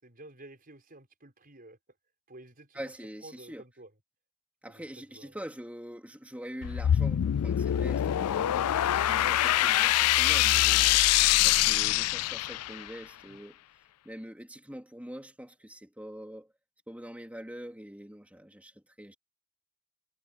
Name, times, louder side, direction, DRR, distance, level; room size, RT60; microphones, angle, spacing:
voice 1, 0.0-1.8 2.3-2.8 3.2-3.9 4.7-5.4 13.3-13.4, right 2 dB, 40° right, 5.5 m, -51 dB
voice 2, 2.7-3.6 4.6-11.0 11.4-13.6 14.0-16.5 16.9-19.1, equal, 5° right, 3.6 m, -44 dB
sound 1, 6.6-12.9, left 13 dB, 90° left, 0.4 m, -24 dB
head